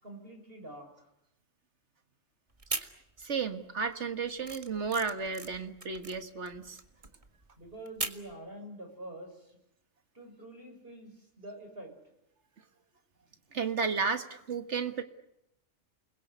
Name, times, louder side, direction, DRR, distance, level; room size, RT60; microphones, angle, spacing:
voice 1, 0.0-1.1 7.6-9.6 10.1-11.9, right 1 dB, 45° right, 4 dB, 6.9 m, -46 dB
sound 1, 2.5-3.5 3.8-8.3, right 2 dB, 25° right, 1.7 m, -39 dB
voice 2, 3.2-6.8 13.5-15.0, right 5 dB, 60° right, 9 dB, 1.9 m, -33 dB
29.5 x 21.5 x 8.3 m, 0.85 s
omnidirectional pair, 1.3 m